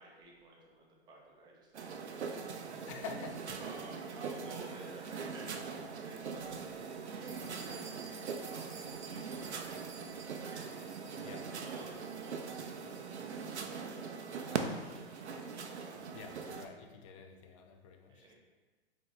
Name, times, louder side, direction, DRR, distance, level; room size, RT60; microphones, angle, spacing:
voice 1, 0.0-2.8 3.6-8.8 9.0-9.7 10.1-11.3 11.6-13.2 13.8-15.4 18.1-18.3, right 2 dB, 15° right, -2 dB, 0.6 m, -54 dB
sound 1, 1.7-16.7, right 5 dB, 80° right, 0.5 m, -41 dB
voice 2, 2.9-3.4 11.2-11.5 11.8-12.0 16.1-18.3, left 5 dB, 30° left, 5 dB, 0.4 m, -48 dB
sound 2, 7.3-15.1, right 6 dB, 65° right, 0.9 m, -54 dB
4.9 x 2.9 x 3.2 m, 1.3 s
figure-of-eight pair, 110°, 33 cm